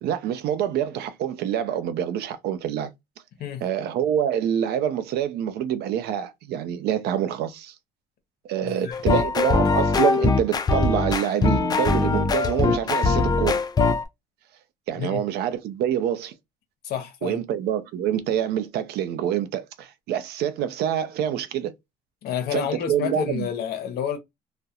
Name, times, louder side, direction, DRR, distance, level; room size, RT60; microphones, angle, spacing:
voice 1, 0.0-2.9 3.6-7.7 8.4-13.6 14.9-16.3 17.2-21.7 22.5-23.5, right 9 dB, 75° right, 0.5 m, -26 dB
voice 2, 8.6-9.0 15.0-15.2 16.8-17.4 22.2-24.2, left 8 dB, 65° left, 0.7 m, -29 dB
sound 1, 8.9-14.0, left 4 dB, 25° left, 0.4 m, -21 dB
2.4 x 2.1 x 2.8 m
cardioid pair, 110°, 17 cm